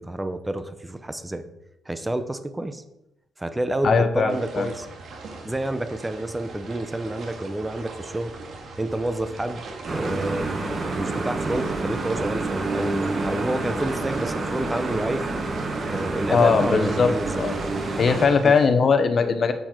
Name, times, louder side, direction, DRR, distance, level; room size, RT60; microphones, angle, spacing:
voice 1, 0.0-1.4 1.9-2.8 3.4-4.9 5.4-8.3 8.8-9.6 9.9-10.5 11.0-15.2 15.9-17.5 18.4-18.5, right 1 dB, 15° right, 10 dB, 0.7 m, -29 dB
voice 2, 3.8-4.7 16.3-17.1 17.4-17.5 18.0-19.5, left 5 dB, 45° left, 9 dB, 1.0 m, -20 dB
sound 1, 4.3-18.7, right 3 dB, 60° right, 2.0 m, -40 dB
sound 2, 9.9-18.3, right 3 dB, 40° right, 1.6 m, -28 dB
7.8 x 7.1 x 4.4 m, 0.85 s
cardioid pair, 100°, 0 cm